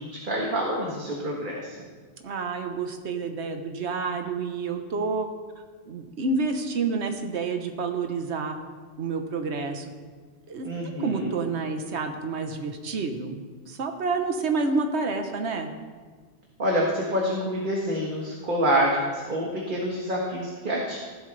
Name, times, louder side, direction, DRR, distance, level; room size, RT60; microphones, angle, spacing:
voice 1, 0.0-1.8 10.6-11.3 16.6-21.0, equal, 45° right, -2 dB, 1.7 m, -27 dB
voice 2, 2.2-5.3 5.9-8.6 9.0-9.8 10.5-10.7 11.0-15.7, right 4 dB, 80° right, 5 dB, 1.3 m, -29 dB
15.5 x 12.0 x 3.3 m, 1.5 s
omnidirectional pair, 1.1 m